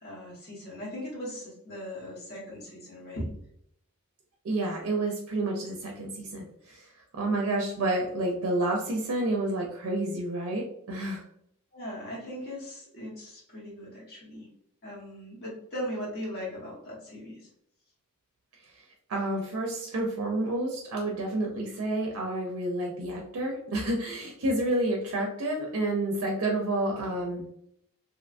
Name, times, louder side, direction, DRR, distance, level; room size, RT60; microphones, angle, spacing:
voice 1, 0.0-3.3 11.7-14.5 14.8-17.5, equal, 45° left, -5 dB, 1.0 m, -39 dB
voice 2, 4.4-6.9 7.1-11.2 19.1-27.5, right 2 dB, 65° right, 0 dB, 0.4 m, -29 dB
2.7 x 2.2 x 2.5 m, 0.72 s
head